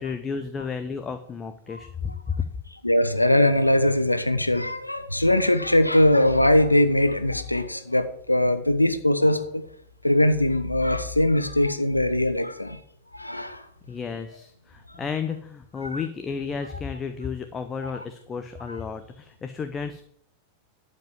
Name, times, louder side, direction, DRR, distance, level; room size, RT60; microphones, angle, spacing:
voice 1, 0.0-1.9 2.3-2.5 13.9-20.0, left 6 dB, 20° left, 8 dB, 0.8 m, -32 dB
voice 2, 2.8-9.6 10.0-12.8 13.1-13.7 15.9-16.0, left 1 dB, 85° left, 10 dB, 1.0 m, -21 dB
12.0 x 5.4 x 7.3 m, 0.67 s
figure-of-eight pair, 90°, 0 cm